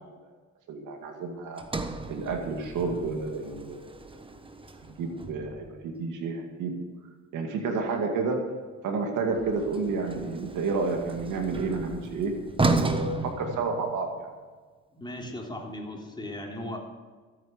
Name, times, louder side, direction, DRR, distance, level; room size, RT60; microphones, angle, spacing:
voice 1, 0.7-1.6 2.1-3.9 4.9-6.9 7.3-8.5 8.8-12.3 12.7-14.1, right 4 dB, 85° right, 3 dB, 2.2 m, -30 dB
Sliding door, 1.6-5.8 9.3-14.3, right 3 dB, 15° right, 1.2 m, -33 dB
voice 2, 14.9-16.8, left 1 dB, 15° left, -1 dB, 3.5 m, -37 dB
13.5 x 9.1 x 6.7 m, 1.4 s
cardioid pair, 90°, 30 cm